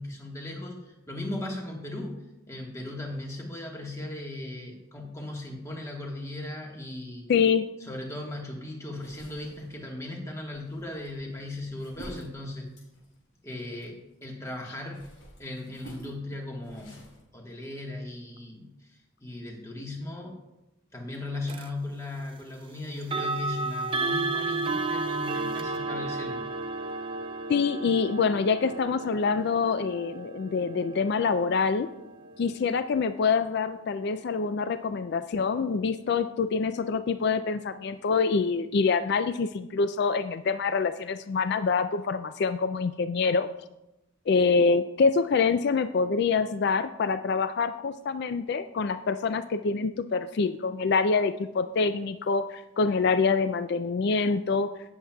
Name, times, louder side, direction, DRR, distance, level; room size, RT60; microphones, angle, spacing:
voice 1, 0.0-7.3 7.8-12.7 13.4-15.1 15.4-17.0 17.3-18.7 19.2-20.4 20.9-26.5, left 2 dB, 15° left, 0 dB, 1.4 m, -37 dB
voice 2, 7.3-7.7 27.5-31.9 32.4-43.5 44.3-54.7, left 5 dB, 50° left, 10 dB, 0.3 m, -26 dB
sound 1, 9.0-14.2 14.6-17.2, right 1 dB, 90° left, 3.9 m, -49 dB
sound 2, 21.5-21.7 23.0-33.9, right 3 dB, 25° right, 0.4 m, -33 dB
17.5 x 7.2 x 2.3 m, 0.93 s
head